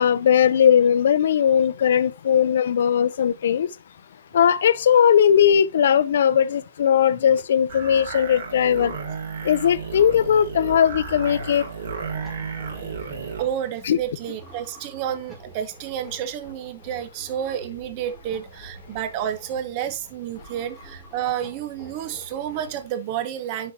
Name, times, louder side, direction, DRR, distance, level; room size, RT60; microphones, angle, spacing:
voice 1, 0.0-3.7 4.3-9.0 9.4-11.7 13.8-14.0, left 8 dB, 60° left, 0.5 m, -19 dB
sound 1, 7.7-13.5, right 5 dB, 60° right, 2.9 m, -33 dB
sound 2, 9.6-22.9, right 1 dB, 5° right, 2.2 m, -47 dB
voice 2, 13.4-23.7, right 10 dB, 25° right, 0.9 m, -30 dB
10.0 x 4.6 x 2.8 m
hypercardioid pair, 175°, 0 cm